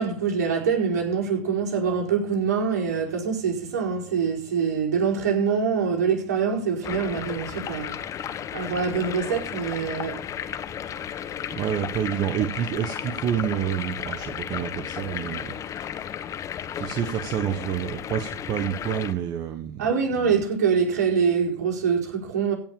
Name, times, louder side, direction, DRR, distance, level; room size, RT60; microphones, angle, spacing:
voice 1, 0.0-7.9 8.5-10.2 19.8-22.5, right 6 dB, 80° right, 4.8 m, -24 dB
sound 1, 6.8-19.1, left 9 dB, 35° left, 1.2 m, -34 dB
voice 2, 11.6-16.1 16.8-20.4, right 10 dB, 45° right, 1.4 m, -29 dB
16.5 x 5.8 x 7.2 m
hypercardioid pair, 90°, 9 cm